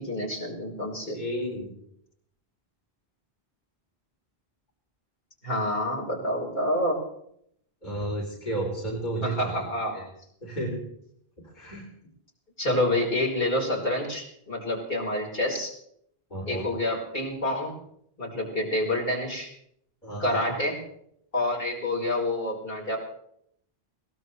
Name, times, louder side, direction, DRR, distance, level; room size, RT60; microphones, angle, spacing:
voice 1, 0.0-1.2 5.4-7.0 9.2-10.0 12.6-15.7 16.4-17.7 18.2-19.5 20.2-20.8 21.3-23.0, left 1 dB, 65° left, -3 dB, 5.1 m, -28 dB
voice 2, 1.1-1.8 7.8-9.7 9.9-10.1 10.4-10.8 11.4-11.9 16.3-16.7 20.0-20.4, right 1 dB, 45° left, -2 dB, 3.8 m, -32 dB
22.0 x 18.5 x 3.3 m, 0.71 s
omnidirectional pair, 1.0 m